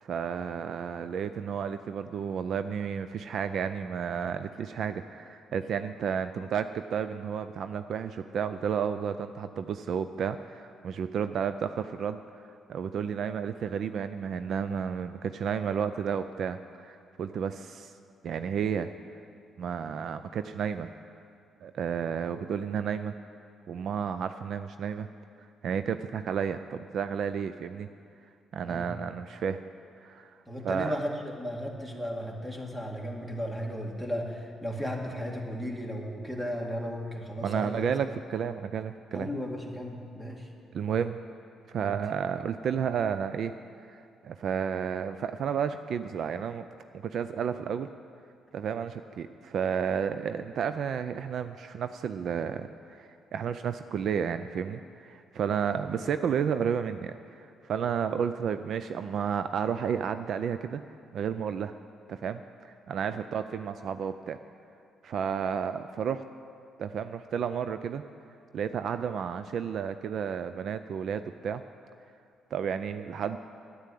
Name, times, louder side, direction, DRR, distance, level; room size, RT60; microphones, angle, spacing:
voice 1, 0.1-12.2 12.7-17.9 18.2-18.9 19.6-20.9 21.6-23.1 23.7-25.1 25.6-27.9 28.5-29.6 30.0-30.4 30.6-31.0 37.4-39.3 40.7-41.2 41.7-43.5 43.9-46.7 47.0-47.9 48.5-60.8 61.1-61.7 62.1-64.4 65.0-66.2 66.8-68.0 68.5-71.6 72.5-73.4, right 7 dB, 65° right, 10 dB, 0.4 m, -32 dB
voice 2, 30.5-37.9 39.1-40.5 41.8-42.0 55.7-55.8, equal, 10° right, 0 dB, 2.0 m, -35 dB
9.6 x 9.6 x 8.4 m, 2.4 s
cardioid pair, 90°, 0 cm